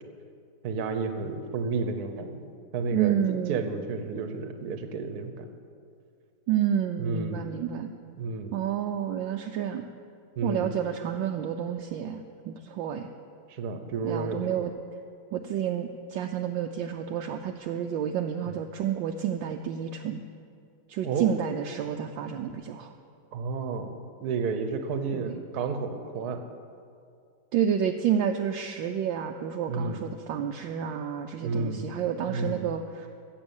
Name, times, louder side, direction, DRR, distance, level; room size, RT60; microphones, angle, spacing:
voice 1, 0.6-5.5 7.0-7.5 8.2-8.5 10.4-10.7 13.5-14.6 21.0-21.3 23.3-23.9 24.2-26.4 29.7-30.0 31.4-31.9 32.3-32.7, right 4 dB, 55° right, 7 dB, 1.3 m, -31 dB
voice 2, 2.9-3.7 6.5-7.9 8.5-9.9 10.4-13.1 14.0-14.7 15.3-20.2 20.9-22.9 25.1-25.4 27.5-33.1, right 9 dB, 75° right, 4 dB, 1.2 m, -30 dB
15.0 x 7.8 x 7.2 m, 2.3 s
omnidirectional pair, 2.3 m